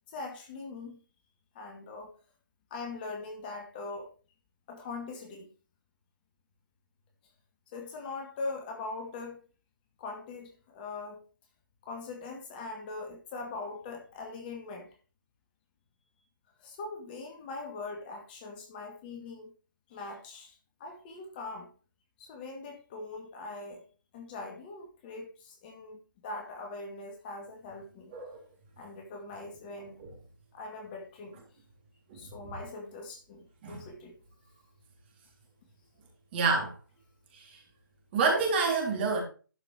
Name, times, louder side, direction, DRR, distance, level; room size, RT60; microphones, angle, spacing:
voice 1, 0.1-1.0 1.5-2.1 2.7-4.1 4.7-5.5 7.7-9.4 10.0-11.2 11.8-14.9 16.6-19.5 19.9-21.7 22.2-23.8 24.1-28.1 28.8-30.0 30.5-31.4 32.1-34.1, left 3 dB, 25° left, 2.1 m, -41 dB
voice 2, 32.1-32.5 33.6-33.8 36.3-36.7 37.3-37.6 38.1-39.2, right 4 dB, 30° right, 3.5 m, -28 dB
12.0 x 5.9 x 4.5 m
figure-of-eight pair, 145°, 11 cm